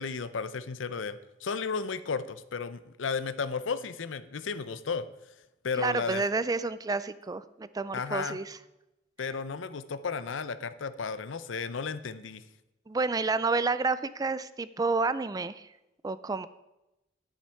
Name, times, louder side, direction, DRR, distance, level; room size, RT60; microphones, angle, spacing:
voice 1, 0.0-5.1 5.6-6.2 7.9-8.4 9.2-12.4, left 5 dB, 80° left, 14 dB, 0.6 m, -34 dB
voice 2, 5.8-8.6 12.9-15.7 16.0-16.5, right 3 dB, 20° right, 15 dB, 0.3 m, -30 dB
10.5 x 8.9 x 4.5 m, 0.94 s
head